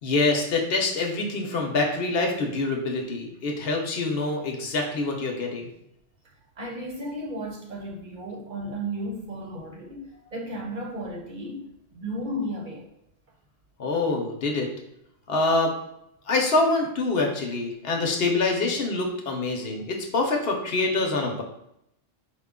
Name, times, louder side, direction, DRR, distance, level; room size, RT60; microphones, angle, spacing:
voice 1, 0.0-5.7 13.8-14.7 15.3-15.7 16.3-21.4, left 3 dB, 70° left, 2 dB, 0.9 m, -25 dB
voice 2, 6.6-11.7 11.9-12.9, equal, 50° right, -2 dB, 0.9 m, -34 dB
4.6 x 2.2 x 3.6 m, 0.78 s
omnidirectional pair, 1.1 m